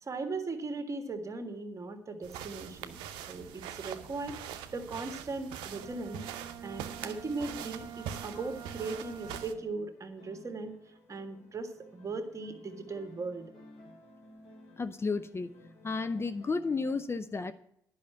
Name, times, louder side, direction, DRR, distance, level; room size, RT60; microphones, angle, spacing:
voice 1, 0.0-3.0 3.3-6.2 6.6-13.5, right 3 dB, 35° right, 7 dB, 1.6 m, -38 dB
sound 1, 2.2-9.5, right 9 dB, 70° right, 0.7 m, -43 dB
Bowed string instrument, 5.7-9.9, right 8 dB, 55° right, 1.3 m, -47 dB
sound 2, 7.1-17.0, left 1 dB, 70° left, 3.4 m, -56 dB
voice 2, 14.8-15.5 15.8-17.5, left 4 dB, 30° left, 11 dB, 0.6 m, -32 dB
10.5 x 5.7 x 8.3 m, 0.74 s
hypercardioid pair, 45°, 9 cm